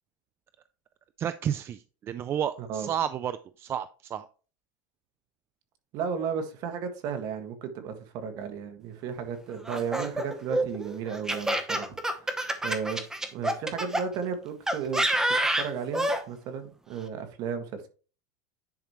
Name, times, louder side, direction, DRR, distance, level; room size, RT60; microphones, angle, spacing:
voice 1, 1.2-4.3, right 9 dB, 25° right, 0.4 m, -31 dB
voice 2, 2.6-2.9 5.9-12.3 12.6-13.0 13.3-17.9, right 6 dB, 45° right, 1.7 m, -34 dB
Laughter, 9.7-14.0 14.7-16.2, right 1 dB, 5° right, 0.9 m, -27 dB
10.5 x 5.0 x 3.0 m
supercardioid pair, 150°, 9 cm